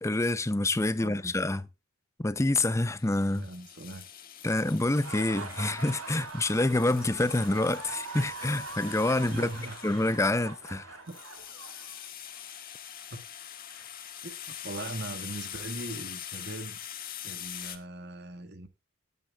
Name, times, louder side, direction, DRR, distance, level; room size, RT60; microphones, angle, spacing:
voice 1, 0.0-1.7 2.2-3.5 4.4-9.5 9.8-11.0, left 2 dB, 15° left, 0.5 m, -27 dB
sound 1, 2.9-17.8, left 10 dB, 40° left, 1.6 m, -44 dB
voice 2, 3.3-4.0 9.3-9.8 11.1-11.2 14.2-16.8 17.2-18.7, right 2 dB, 50° right, 1.6 m, -40 dB
Laughter, 4.7-12.4, right 4 dB, 85° right, 2.9 m, -42 dB
18.0 x 9.5 x 2.3 m
head